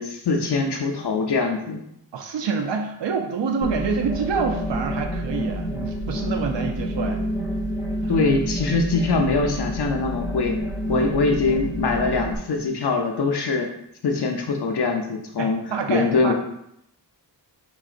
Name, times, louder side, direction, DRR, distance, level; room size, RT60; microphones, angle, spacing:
voice 1, 0.0-1.8 8.1-10.5 10.9-13.7 14.0-15.6 15.9-16.3, left 3 dB, 65° left, 3 dB, 0.6 m, -23 dB
voice 2, 2.1-7.2 10.9-11.1 15.4-16.3, right 5 dB, 85° right, 3 dB, 0.6 m, -27 dB
sound 1, 3.6-12.4, equal, 10° right, 1.1 m, -28 dB
4.8 x 3.9 x 2.5 m, 0.76 s
wide cardioid pair, 80°, 42 cm